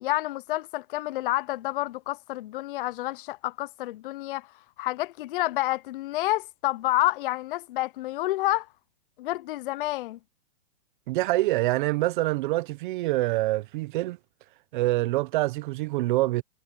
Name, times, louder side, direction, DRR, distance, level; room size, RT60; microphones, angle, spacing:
voice 1, 0.0-4.5 4.8-8.7 9.2-10.2, left 17 dB, 50° left, 0.5 m, -29 dB
voice 2, 11.1-14.2 14.7-16.4, right 18 dB, 40° right, 1.1 m, -25 dB
hypercardioid pair, 145°, 36 cm